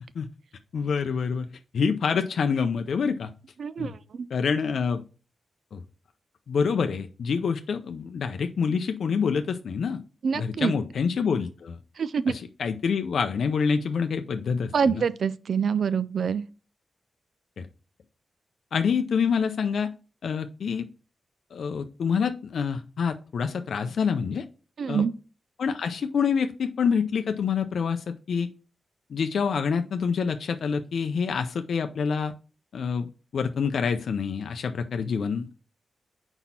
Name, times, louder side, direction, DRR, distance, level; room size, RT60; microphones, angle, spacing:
voice 1, 0.7-1.5 1.7-3.3 3.8-3.9 4.3-5.0 5.7-5.8 6.5-10.0 10.3-11.8 12.3-15.0 17.6-17.7 18.7-19.9 20.2-20.9 21.5-24.5 24.9-25.0 25.6-28.5 29.1-32.3 32.7-35.6, left 6 dB, 75° left, 0.5 m, -27 dB
voice 2, 3.6-4.0 10.2-10.7 12.0-12.4 14.7-16.4 24.8-25.1, right 6 dB, 65° right, 0.3 m, -25 dB
4.4 x 4.1 x 5.6 m
wide cardioid pair, 125°, 0 cm